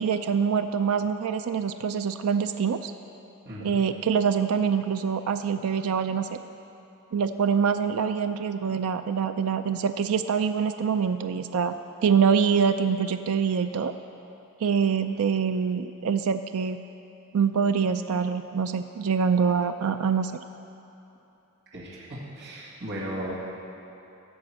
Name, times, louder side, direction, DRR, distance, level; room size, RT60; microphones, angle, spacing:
voice 1, 0.0-2.9 3.6-6.3 7.1-11.7 12.0-13.9 14.6-16.8 17.3-20.4, right 6 dB, 85° right, 9 dB, 0.4 m, -25 dB
voice 2, 3.4-3.8 21.7-23.3, equal, 55° right, -7 dB, 2.1 m, -36 dB
13.5 x 5.2 x 7.7 m, 2.9 s
head